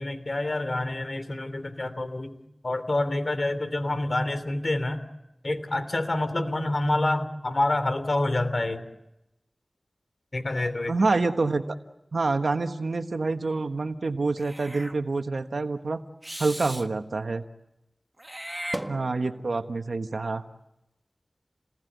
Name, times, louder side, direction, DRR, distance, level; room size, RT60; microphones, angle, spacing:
voice 1, 0.0-2.3 2.6-5.0 5.4-8.8 10.3-10.9, left 2 dB, 60° left, 10 dB, 3.1 m, -27 dB
voice 2, 10.9-11.8 12.1-16.0 16.4-17.4 18.9-20.4, right 3 dB, 90° right, 8 dB, 1.3 m, -27 dB
Meow / Hiss, 14.4-15.0 16.2-16.9 18.2-19.4, right 1 dB, 15° right, 1.7 m, -36 dB
29.5 x 20.0 x 9.3 m, 0.91 s
wide cardioid pair, 45°, 0 cm